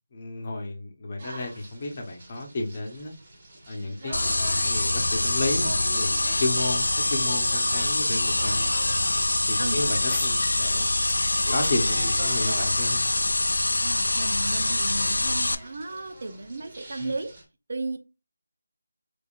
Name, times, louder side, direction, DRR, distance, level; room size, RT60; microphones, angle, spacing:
voice 1, 0.1-3.1 3.7-8.7 9.5-10.9 11.5-13.0 17.0-17.1, left 2 dB, 35° left, 0.8 m, -32 dB
sound 1, 1.2-17.4, right 1 dB, 35° right, 1.4 m, -43 dB
sound 2, 4.1-15.6, left 2 dB, 85° left, 0.4 m, -25 dB
sound 3, 10.1-10.7 11.0-16.1, left 2 dB, 15° left, 1.2 m, -45 dB
voice 2, 13.8-17.3 17.7-18.0, right 2 dB, 60° right, 0.6 m, -34 dB
3.6 x 3.3 x 2.4 m
figure-of-eight pair, 165°, 0 cm